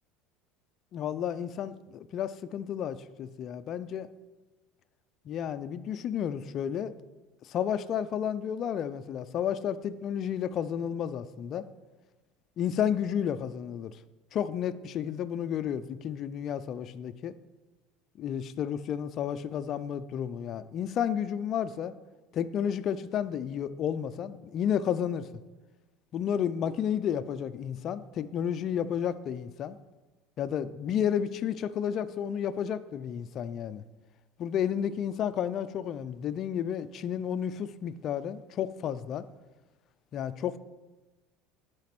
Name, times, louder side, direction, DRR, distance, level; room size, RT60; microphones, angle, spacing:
voice 1, 0.9-4.1 5.3-6.9 7.4-11.7 12.6-14.0 14.3-17.3 18.2-21.9 22.3-25.3 26.1-29.8 30.4-33.8 34.4-39.3 40.1-40.6, left 9 dB, 35° left, 0.4 m, -31 dB
10.5 x 5.0 x 6.0 m
cardioid pair, 155°, 0 cm